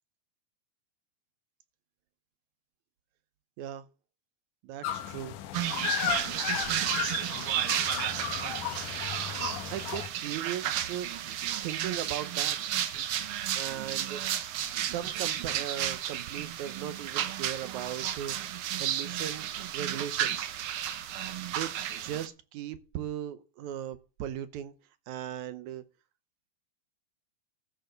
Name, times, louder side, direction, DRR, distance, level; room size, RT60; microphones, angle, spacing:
voice 1, 4.6-5.3 8.2-8.5 9.7-11.1 11.6-12.6 13.6-18.5 18.8-19.5 19.7-20.5 21.5-24.7 25.1-25.8, right 10 dB, 75° right, 2.2 m, -38 dB
sound 1, 4.8-10.1, left 10 dB, 85° left, 2.4 m, -34 dB
sound 2, 5.5-22.3, right 11 dB, 90° right, 1.1 m, -33 dB
14.0 x 4.8 x 6.4 m
omnidirectional pair, 3.6 m